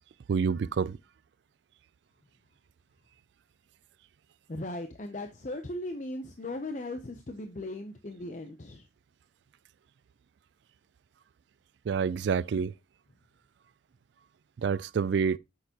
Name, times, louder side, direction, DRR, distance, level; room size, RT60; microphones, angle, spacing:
voice 1, 0.3-1.0 11.9-12.7 14.6-15.4, right 6 dB, 65° right, 0.3 m, -27 dB
voice 2, 4.5-8.8, left 1 dB, 40° left, 0.6 m, -38 dB
8.1 x 6.5 x 2.9 m
head